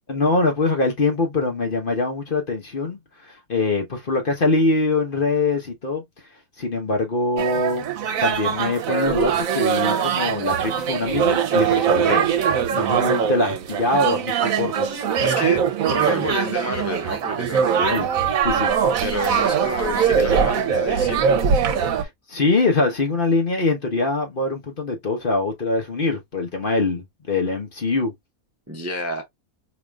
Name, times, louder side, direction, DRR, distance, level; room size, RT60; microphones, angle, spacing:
voice 1, 0.1-6.0 6.6-7.9 8.2-12.3 12.7-14.9 17.9-18.1 18.4-18.7 22.0-28.1, left 3 dB, 40° left, 1.1 m, -23 dB
sound 1, 7.4-22.0, right 7 dB, 70° right, 1.1 m, -22 dB
voice 2, 15.2-15.6 15.9-18.0 19.0-21.4 28.7-29.2, equal, 15° right, 0.6 m, -29 dB
4.9 x 3.1 x 2.3 m
omnidirectional pair, 1.5 m